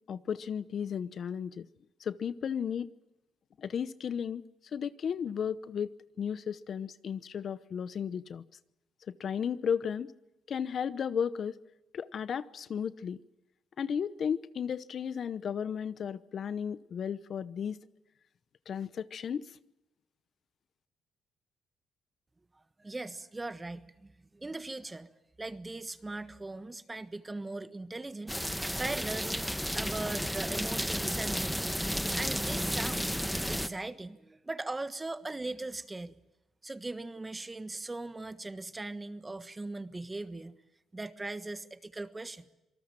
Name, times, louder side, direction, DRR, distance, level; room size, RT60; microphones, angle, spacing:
voice 1, 0.0-1.7 2.0-2.9 3.6-4.4 4.7-5.9 6.2-8.4 9.1-10.1 10.5-11.6 11.9-13.2 13.8-17.8 18.7-19.4, left 7 dB, 55° left, 16 dB, 0.8 m, -34 dB
voice 2, 22.8-25.1 25.4-28.4 28.7-31.7 32.1-33.1 33.5-36.1 36.6-40.6 40.9-42.4, right 2 dB, 20° right, 13 dB, 1.4 m, -39 dB
sound 1, 28.3-33.7, equal, ahead, 1.3 m, -32 dB
26.5 x 19.0 x 7.5 m, 0.96 s
cardioid pair, 90°, 0 cm